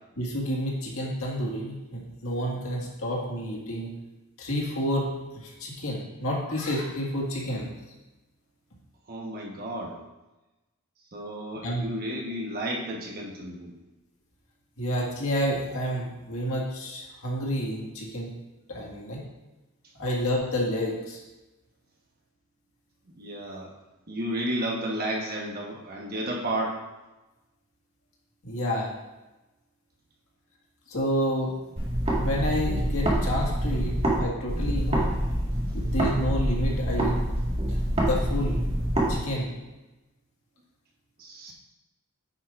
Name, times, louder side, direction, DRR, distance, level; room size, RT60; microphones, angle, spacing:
voice 1, 0.2-3.9 4.4-5.1 5.4-7.7 11.6-11.8 14.8-18.3 18.7-19.2 20.0-21.2 28.4-28.9 30.9-31.6 32.1-35.0 35.7-37.2 37.6-38.6 39.1-39.5, equal, 75° left, -3 dB, 1.9 m, -29 dB
voice 2, 9.1-10.0 11.1-13.7 23.1-23.7 24.1-26.8 41.2-41.5, right 1 dB, 45° right, -2 dB, 1.2 m, -32 dB
sound 1, 31.8-34.2 34.5-39.1, right 1 dB, 30° right, 1.8 m, -26 dB
9.3 x 7.9 x 2.5 m, 1.1 s
head